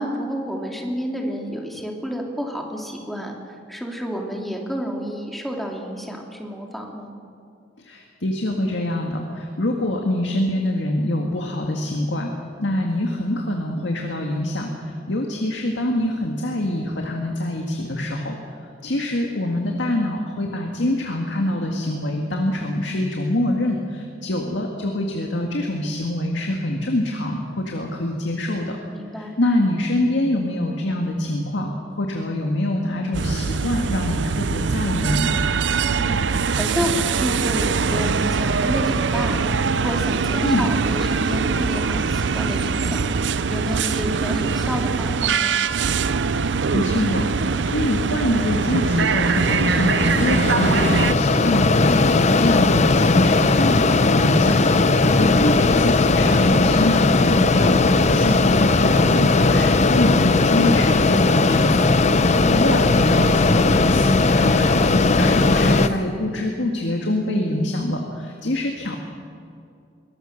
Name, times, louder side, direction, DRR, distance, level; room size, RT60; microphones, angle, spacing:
voice 1, 0.0-7.1 28.9-29.3 35.9-45.6, equal, ahead, 0 dB, 2.7 m, -30 dB
voice 2, 7.8-12.3 12.6-18.4 18.8-28.8 29.2-31.7 32.0-35.3 40.4-40.7 46.4-61.9 62.2-69.0, left 1 dB, 75° left, 1 dB, 2.0 m, -25 dB
sound 1, 33.1-51.1, right 5 dB, 70° right, 0.6 m, -22 dB
Mechanisms, 47.9-65.9, left 3 dB, 40° left, 0.8 m, -18 dB
22.5 x 18.5 x 6.6 m, 2.4 s
head